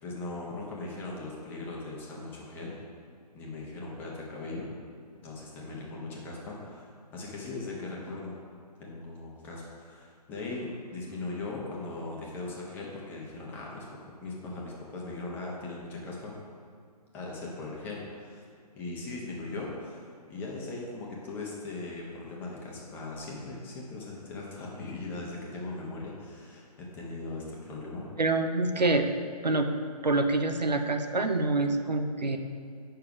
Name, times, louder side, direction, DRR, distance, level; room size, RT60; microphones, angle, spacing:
voice 1, 0.0-2.8 3.3-4.7 5.2-8.4 8.8-16.3 17.1-18.4 18.7-28.1, left 3 dB, 10° left, -3 dB, 0.8 m, -39 dB
voice 2, 28.2-29.0 29.4-29.7 30.0-32.4, right 2 dB, 85° right, 6 dB, 0.7 m, -26 dB
6.9 x 5.7 x 4.8 m, 2.3 s
figure-of-eight pair, 140°, 21 cm